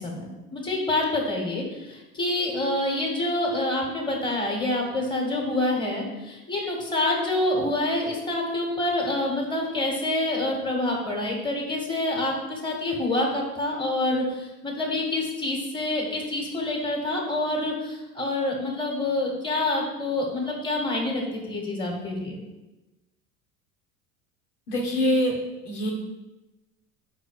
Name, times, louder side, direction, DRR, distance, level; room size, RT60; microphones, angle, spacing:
voice 1, 0.0-22.4, left 2 dB, 10° left, 0 dB, 1.7 m, -27 dB
voice 2, 24.7-25.3 25.6-25.9, equal, 75° left, -1 dB, 1.6 m, -24 dB
5.2 x 4.1 x 4.7 m, 1.1 s
hypercardioid pair, 75°, 44 cm